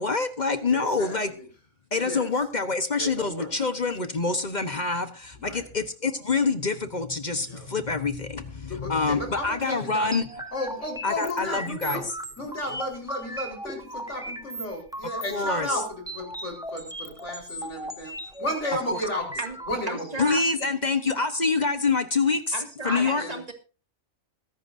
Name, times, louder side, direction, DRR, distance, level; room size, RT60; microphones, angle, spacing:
voice 1, 0.0-1.3 1.9-10.2 11.0-12.0 15.3-15.7 20.2-22.5 22.8-23.2, left 4 dB, 35° left, 9 dB, 1.2 m, -26 dB
voice 2, 0.7-1.5 2.0-2.3 3.0-3.7 5.4-5.6 7.4-7.7 8.7-10.1 10.5-12.0 12.4-19.3 19.7-20.1 22.8-23.4, left 1 dB, 60° left, 1 dB, 4.9 m, -33 dB
sound 1, 10.1-19.7, equal, 5° right, 1.1 m, -37 dB
voice 3, 19.9-20.5 22.5-23.5, right 2 dB, 30° right, 4 dB, 2.4 m, -34 dB
22.0 x 11.0 x 2.7 m, 0.35 s
omnidirectional pair, 1.4 m